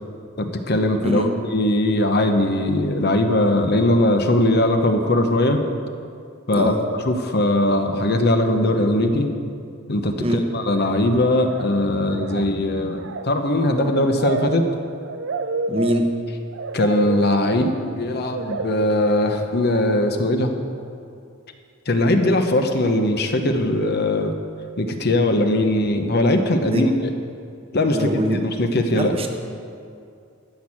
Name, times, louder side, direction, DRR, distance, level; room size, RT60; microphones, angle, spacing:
voice 1, 0.4-5.6 6.5-6.7 7.0-9.3 9.9-14.7 16.7-20.5 21.9-24.3 24.8-26.9 27.7-28.1 28.6-29.1, left 1 dB, 50° left, 6 dB, 1.0 m, -20 dB
sound 1, 10.7-11.1 11.4-11.8 12.1-19.7, right 3 dB, 60° right, 0.5 m, -30 dB
voice 2, 15.7-16.1 26.6-26.8 27.9-28.4 28.9-29.3, equal, 30° right, 4 dB, 1.0 m, -23 dB
13.0 x 6.3 x 8.7 m, 2.4 s
head